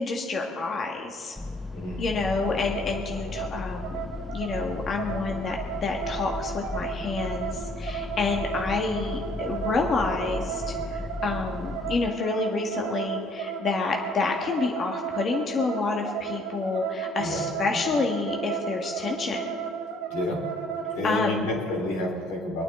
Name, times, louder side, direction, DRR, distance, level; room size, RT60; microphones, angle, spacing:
voice 1, 0.0-1.4 2.0-4.0 4.3-19.6 21.0-21.5, left 4 dB, 40° left, 1 dB, 1.6 m, -28 dB
sound 1, 1.3-12.1, left 3 dB, 5° left, 0.4 m, -36 dB
voice 2, 1.7-2.1 17.2-17.4 17.7-17.8 20.1-20.4 20.9-22.6, left 1 dB, 85° left, -2 dB, 4.1 m, -30 dB
sound 2, 2.4-21.0, right 8 dB, 80° right, 1.5 m, -34 dB
26.0 x 8.9 x 3.8 m, 2.6 s
supercardioid pair, 90°, 0 cm